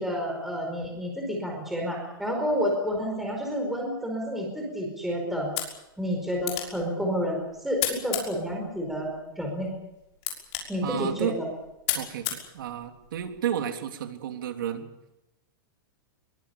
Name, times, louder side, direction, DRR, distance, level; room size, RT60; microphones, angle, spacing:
voice 1, 0.0-5.5 6.0-9.1 9.4-9.7 10.7-11.5, equal, ahead, 0 dB, 4.7 m, -29 dB
sound 1, 5.4-13.4, left 11 dB, 40° left, 5.9 m, -36 dB
voice 2, 10.8-11.4 11.9-14.9, right 9 dB, 70° right, 5 dB, 3.4 m, -32 dB
23.0 x 22.5 x 7.1 m, 0.92 s
supercardioid pair, 165°, 11 cm